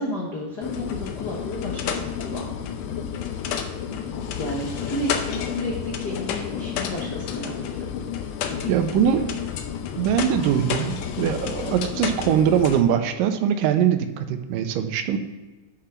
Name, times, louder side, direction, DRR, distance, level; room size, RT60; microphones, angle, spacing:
voice 1, 0.0-2.6 4.4-7.9 8.4-9.2, left 1 dB, 70° left, -3 dB, 0.9 m, -32 dB
sound 1, 0.6-12.8, left 8 dB, 90° left, 1.5 m, -30 dB
voice 2, 8.7-9.2 10.0-15.2, right 9 dB, 85° right, 8 dB, 2.3 m, -22 dB
6.8 x 5.8 x 5.7 m, 1.2 s
omnidirectional pair, 3.8 m